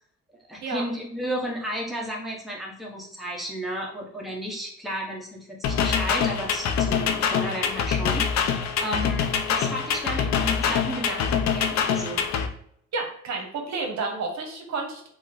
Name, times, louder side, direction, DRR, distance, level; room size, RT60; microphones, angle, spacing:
voice 1, 0.5-12.2, equal, ahead, -3 dB, 0.9 m, -33 dB
sound 1, 5.6-12.5, left 7 dB, 65° left, 0.5 m, -25 dB
voice 2, 12.9-15.1, right 3 dB, 65° right, 2 dB, 0.9 m, -30 dB
3.0 x 2.2 x 3.7 m, 0.67 s
cardioid pair, 90°, 30 cm